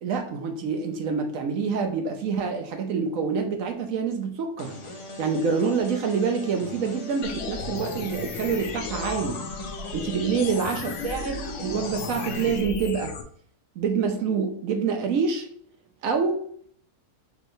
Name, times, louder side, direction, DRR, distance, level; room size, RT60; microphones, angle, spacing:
voice 1, 0.0-4.7 5.2-9.4 9.9-13.1 13.8-15.5 16.0-16.4, right 5 dB, 65° right, 4 dB, 1.1 m, -26 dB
sound 1, 4.6-12.6, left 1 dB, 35° left, 0.5 m, -40 dB
sound 2, 7.2-13.2, left 5 dB, 90° left, 1.2 m, -35 dB
5.5 x 3.0 x 3.1 m, 0.62 s
omnidirectional pair, 1.6 m